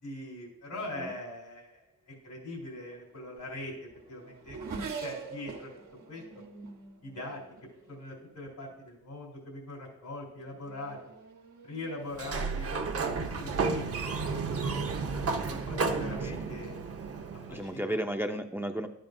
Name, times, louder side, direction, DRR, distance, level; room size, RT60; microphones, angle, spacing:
voice 1, 0.0-3.7 4.1-4.6 5.0-5.7 6.1-6.4 7.0-7.4 7.9-11.0 11.6-16.7 17.5-18.0, left 2 dB, 90° left, -3 dB, 3.8 m, -42 dB
Race car auto racing / Accelerating revving vroom, 2.8-8.7 9.5-9.9 10.3-16.2, right 5 dB, 85° right, 1.2 m, -46 dB
Sliding door, 12.1-17.8, right 4 dB, 50° right, 0.8 m, -32 dB
voice 2, 17.5-18.9, right 1 dB, 5° right, 5 dB, 0.5 m, -34 dB
12.0 x 8.9 x 2.6 m, 0.80 s
wide cardioid pair, 120°, 30 cm